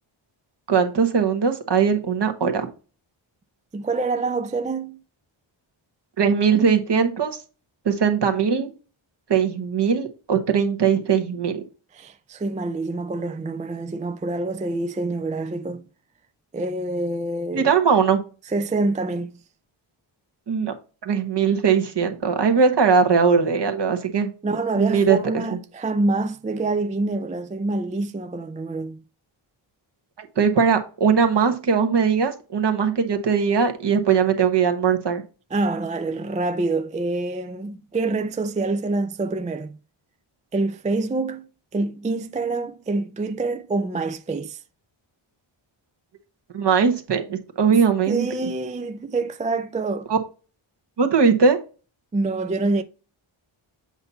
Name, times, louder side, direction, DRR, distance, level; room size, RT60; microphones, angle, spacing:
voice 1, 0.7-2.7 6.2-7.4 7.8-8.7 9.3-11.6 17.5-18.2 20.5-20.7 21.0-24.3 24.8-25.4 30.2-35.2 46.5-48.5 50.1-50.2 51.0-51.6, right 6 dB, 55° right, 1.2 m, -20 dB
voice 2, 3.7-5.0 11.9-15.8 16.5-17.8 18.5-19.3 24.4-29.0 35.5-39.8 40.5-41.5 41.7-44.6 47.7-50.1 52.1-52.8, right 3 dB, 15° right, 0.3 m, -26 dB
7.9 x 2.7 x 5.6 m
wide cardioid pair, 95°, 50 cm